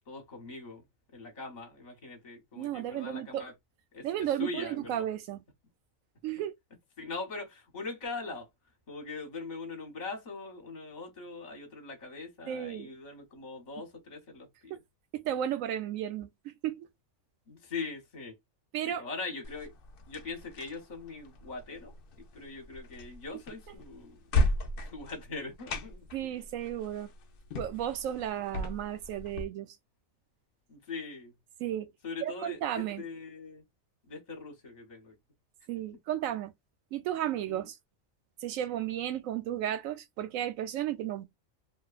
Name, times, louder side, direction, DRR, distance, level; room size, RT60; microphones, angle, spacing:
voice 1, 0.1-0.8 1.1-3.5 3.9-4.1 4.4-5.1 7.0-8.5 8.9-14.8 17.5-18.3 18.8-19.7 20.1-24.3 24.9-26.1 30.7-31.3 32.0-33.6 34.1-35.2 37.5-37.7, left 3 dB, 40° left, 1.0 m, -41 dB
voice 2, 2.6-3.5 4.0-5.4 6.2-6.5 12.5-12.9 14.7-14.8 15.1-16.9 18.7-19.1 26.1-27.1 27.6-29.8 31.6-31.9 32.2-33.0 35.7-36.5 36.9-37.8 38.4-41.2, right 11 dB, 85° right, 1.0 m, -34 dB
sound 1, 19.4-29.4, left 1 dB, 65° left, 0.6 m, -36 dB
3.0 x 2.2 x 2.3 m
omnidirectional pair, 1.3 m